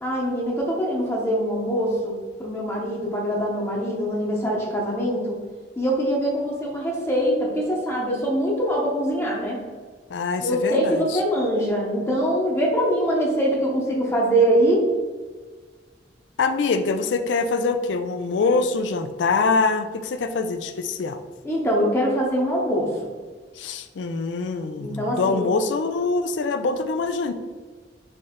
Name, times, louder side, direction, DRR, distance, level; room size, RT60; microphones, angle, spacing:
voice 1, 0.0-5.4 5.8-9.6 10.4-14.8 21.4-22.9 24.8-25.4, equal, 15° left, -3 dB, 0.7 m, -23 dB
voice 2, 10.1-11.2 16.4-21.2 23.6-27.3, left 4 dB, 85° left, 9 dB, 0.4 m, -24 dB
4.4 x 3.2 x 3.6 m, 1.5 s
head